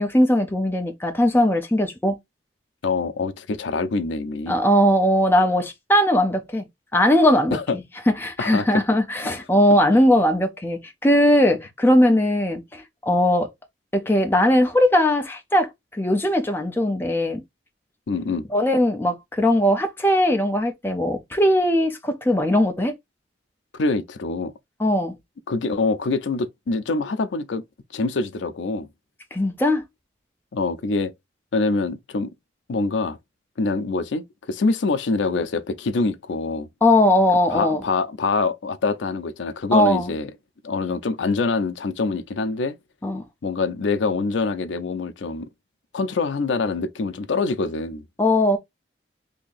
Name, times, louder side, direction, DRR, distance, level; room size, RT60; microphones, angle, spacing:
voice 1, 0.0-2.2 4.5-6.6 6.9-7.6 8.2-13.5 13.9-17.4 18.5-22.9 24.8-25.1 29.3-29.8 36.8-37.8 39.7-40.1 43.0-43.2 48.2-48.6, left 1 dB, 10° left, 0.5 m, -19 dB
voice 2, 2.8-4.5 7.5-7.8 8.4-8.8 18.1-18.4 23.7-24.5 25.5-27.6 27.9-28.9 30.5-31.1 31.5-32.3 32.7-33.2 33.6-36.7 37.5-40.3 40.6-42.8 43.4-45.5 45.9-48.0, left 3 dB, 80° left, 0.5 m, -25 dB
2.8 x 2.6 x 3.9 m
head